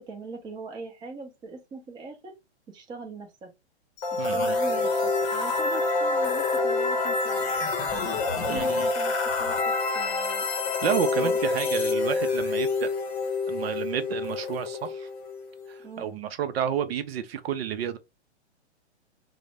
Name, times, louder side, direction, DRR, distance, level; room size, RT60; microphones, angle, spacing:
voice 1, 0.0-2.3 2.7-3.5 4.2-7.5 8.3-10.5 11.1-11.4 15.8-16.2, right 4 dB, 15° right, 0.6 m, -41 dB
sound 1, 4.0-15.8, left 3 dB, 35° left, 0.8 m, -27 dB
voice 2, 4.2-4.6 8.5-8.9 10.8-12.9 13.5-15.1 15.7-18.0, right 8 dB, 60° right, 0.5 m, -30 dB
2.5 x 2.0 x 3.1 m
hypercardioid pair, 130°, 34 cm